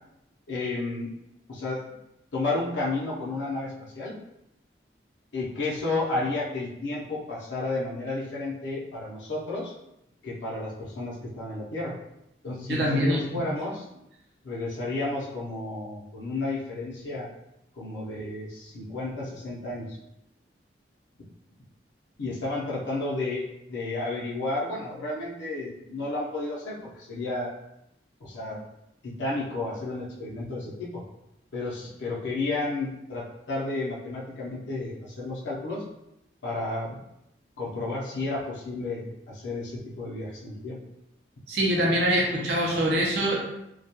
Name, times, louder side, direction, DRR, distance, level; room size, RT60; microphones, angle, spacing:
voice 1, 0.5-1.1 1.5-1.8 2.3-4.2 5.3-9.7 10.2-11.9 12.4-13.8 14.4-17.3 17.8-20.0 22.2-27.5 28.2-28.6 29.0-31.0 31.5-35.8 36.4-37.0 37.6-40.8, left 2 dB, 90° left, -6 dB, 0.5 m, -32 dB
voice 2, 12.7-13.4 41.5-43.4, right 1 dB, 65° right, -2 dB, 0.5 m, -24 dB
2.2 x 2.1 x 2.8 m, 0.83 s
head